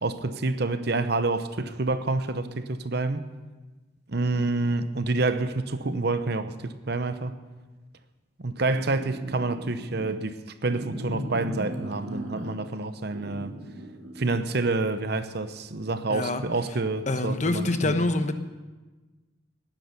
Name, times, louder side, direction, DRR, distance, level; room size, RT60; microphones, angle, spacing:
voice 1, 0.0-3.2 4.1-7.3 8.4-13.6 14.2-18.1, right 3 dB, 55° right, 0.9 m, -28 dB
sound 1, 8.6-10.1 10.6-12.7 13.1-14.5, right 1 dB, 75° right, 2.3 m, -37 dB
voice 2, 16.1-16.4 17.1-18.3, left 2 dB, 40° left, 1.0 m, -25 dB
18.0 x 10.0 x 6.7 m
head